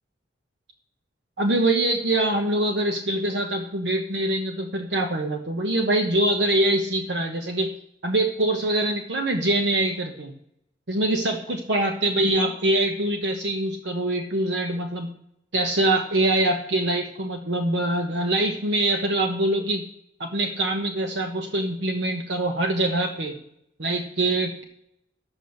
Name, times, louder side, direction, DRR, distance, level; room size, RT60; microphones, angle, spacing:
voice 1, 1.4-7.7 8.0-10.3 10.9-15.1 15.5-19.8 20.2-23.3 23.8-24.6, right 1 dB, 70° right, 3 dB, 1.1 m, -24 dB
10.0 x 7.6 x 6.5 m, 0.75 s
head